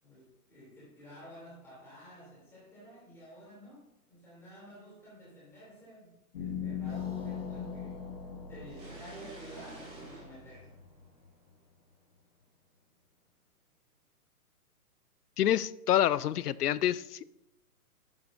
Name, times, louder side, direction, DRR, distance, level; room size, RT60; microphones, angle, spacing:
voice 1, 0.0-8.0 8.5-10.8, equal, 5° left, -7 dB, 3.1 m, -51 dB
sound 1, 6.3-11.6, left 7 dB, 40° left, 1.4 m, -41 dB
sound 2, 8.7-11.5, right 3 dB, 15° right, 3.4 m, -50 dB
voice 2, 15.4-17.2, left 11 dB, 85° left, 19 dB, 0.6 m, -27 dB
11.5 x 8.7 x 2.7 m, 0.89 s
hypercardioid pair, 175°, 45 cm